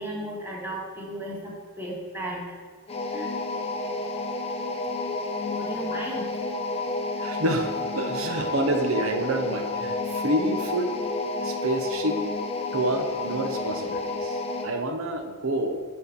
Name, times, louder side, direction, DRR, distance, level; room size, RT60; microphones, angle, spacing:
voice 1, 0.0-2.6 3.1-3.3 5.5-6.3, right 1 dB, 10° right, -3 dB, 1.8 m, -35 dB
sound 1, 2.9-14.8, left 2 dB, 30° left, 0.8 m, -30 dB
voice 2, 7.2-10.9 11.4-12.2 12.7-15.8, right 1 dB, 65° right, 6 dB, 0.9 m, -28 dB
8.9 x 4.4 x 6.9 m, 1.5 s
head